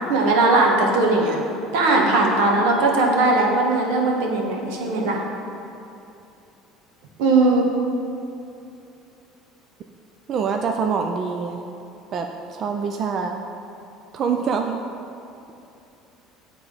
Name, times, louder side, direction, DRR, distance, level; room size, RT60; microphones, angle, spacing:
voice 1, 0.0-1.4 1.7-5.2 7.2-7.6, right 2 dB, 85° right, 0 dB, 1.3 m, -19 dB
voice 2, 10.3-11.6 12.1-13.4 14.1-14.8, right 5 dB, 35° right, 4 dB, 0.3 m, -25 dB
10.5 x 3.6 x 4.8 m, 2.7 s
cardioid pair, 170°, 0 cm